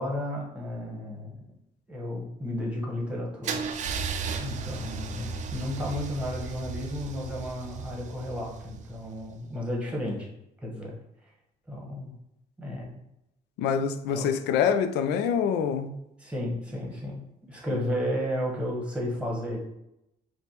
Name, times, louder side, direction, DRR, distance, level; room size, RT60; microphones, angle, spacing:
voice 1, 0.0-1.4 1.9-3.7 4.4-10.3 10.6-10.9 11.7-12.1 12.6-13.0 14.1-14.3 16.2-17.2 17.5-19.6, left 1 dB, 5° right, 1.1 m, -33 dB
Car / Engine starting / Idling, 3.4-9.3, right 5 dB, 45° right, 0.4 m, -35 dB
voice 2, 13.6-15.9, left 7 dB, 80° left, 0.4 m, -25 dB
5.0 x 2.2 x 2.9 m
cardioid pair, 110°, 17 cm